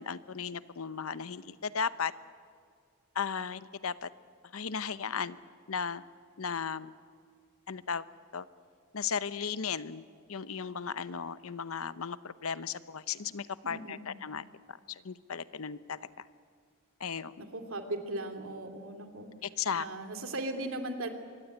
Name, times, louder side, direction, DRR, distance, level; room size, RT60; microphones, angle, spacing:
voice 1, 0.0-2.1 3.1-4.1 4.5-5.4 5.7-6.0 6.4-6.9 7.7-8.0 8.3-8.5 8.9-16.2 17.0-17.5 19.4-19.9, left 6 dB, 85° left, 15 dB, 0.8 m, -36 dB
voice 2, 13.6-14.0 17.4-19.3 19.7-21.1, right 2 dB, 70° right, 6 dB, 2.8 m, -38 dB
25.0 x 22.0 x 9.0 m, 2.2 s
head